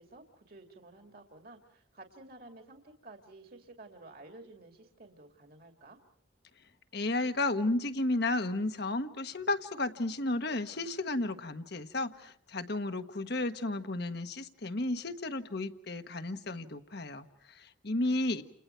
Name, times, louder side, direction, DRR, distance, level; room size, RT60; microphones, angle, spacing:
voice 1, 0.0-6.0 17.9-18.2, right 2 dB, 50° right, 4 dB, 2.5 m, -53 dB
voice 2, 6.9-18.4, left 2 dB, 55° left, 8 dB, 1.3 m, -33 dB
30.0 x 29.5 x 4.5 m, 0.63 s
head